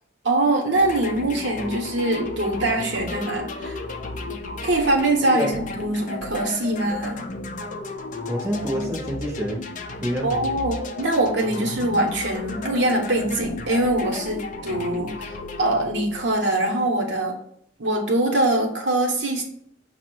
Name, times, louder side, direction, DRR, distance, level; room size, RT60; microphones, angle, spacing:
voice 1, 0.2-3.8 4.6-7.2 10.2-17.4 17.8-19.4, right 2 dB, 60° right, 0.8 m, -23 dB
sound 1, 0.7-16.6, left 3 dB, 40° left, 0.4 m, -33 dB
voice 2, 5.3-5.6 8.3-9.6 10.0-10.4, equal, 15° right, 0.7 m, -27 dB
5.7 x 2.0 x 4.5 m
head